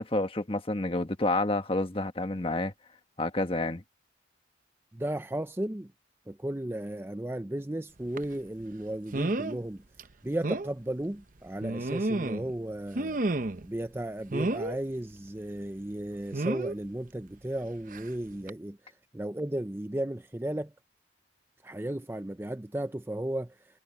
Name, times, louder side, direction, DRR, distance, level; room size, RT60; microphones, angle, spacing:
voice 1, 0.0-2.7 3.2-3.8, left 2 dB, 30° left, 1.4 m, -29 dB
voice 2, 4.9-5.9 6.3-9.8 10.2-13.2 13.6-18.8 19.1-20.7 21.6-23.8, right 1 dB, 10° right, 0.5 m, -35 dB
sound 1, 8.2-8.3 9.1-9.6 10.0-10.1 10.4-10.7 11.6-12.5 12.9-13.7 14.3-14.8 16.3-16.7 17.9-18.1 18.5-18.6, right 2 dB, 45° right, 0.8 m, -30 dB
head